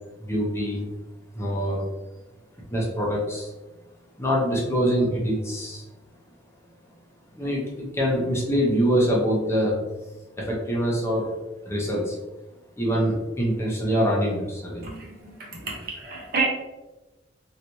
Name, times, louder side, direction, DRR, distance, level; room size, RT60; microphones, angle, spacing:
voice 1, 0.2-0.9 1.3-1.8 2.7-3.5 4.2-5.8 7.3-9.8 10.4-11.3 11.7-12.2 12.8-14.8, equal, 15° left, -4 dB, 0.8 m, -24 dB
voice 2, 14.8-16.5, right 4 dB, 50° right, -2 dB, 0.9 m, -30 dB
3.2 x 2.9 x 2.7 m, 1.1 s
head